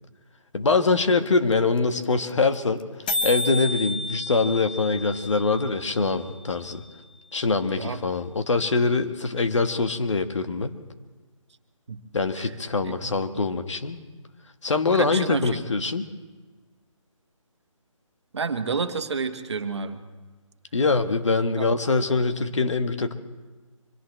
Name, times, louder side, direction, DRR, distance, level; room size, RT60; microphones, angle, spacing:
voice 1, 0.5-2.8 3.2-6.8 7.3-10.8 12.1-14.0 14.6-16.0 20.7-23.1, left 3 dB, 60° left, 8 dB, 1.5 m, -23 dB
sound 1, 1.0-1.1 1.3-1.4 1.5-1.8 2.0-2.1 2.3-2.5 2.8-2.9 3.1-7.0, left 2 dB, 15° left, 0.5 m, -32 dB
voice 2, 12.8-13.4 15.0-15.6 18.3-20.0 21.6-21.7, right 5 dB, 55° right, 8 dB, 1.5 m, -30 dB
25.0 x 17.0 x 3.3 m, 1.3 s
figure-of-eight pair, 155°, 17 cm